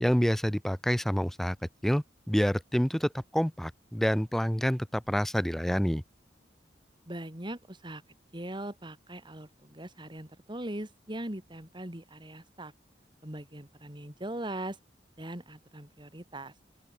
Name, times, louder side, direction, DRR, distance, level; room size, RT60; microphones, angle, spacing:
voice 1, 0.0-1.6 1.8-6.0, equal, ahead, 0.4 m, -27 dB
voice 2, 7.1-8.0 8.3-12.7 13.2-14.8 15.2-16.5, right 1 dB, 25° right, 3.1 m, -40 dB
open air
head